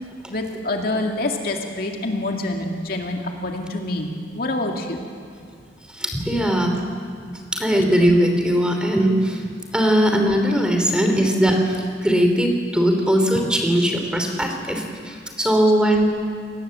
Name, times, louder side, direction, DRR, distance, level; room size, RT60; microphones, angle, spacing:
voice 1, 0.3-5.0, left 2 dB, 55° left, 2 dB, 2.3 m, -26 dB
voice 2, 6.0-6.8 7.5-9.4 9.7-16.0, equal, 5° right, 3 dB, 3.0 m, -19 dB
26.5 x 19.0 x 7.7 m, 2.2 s
head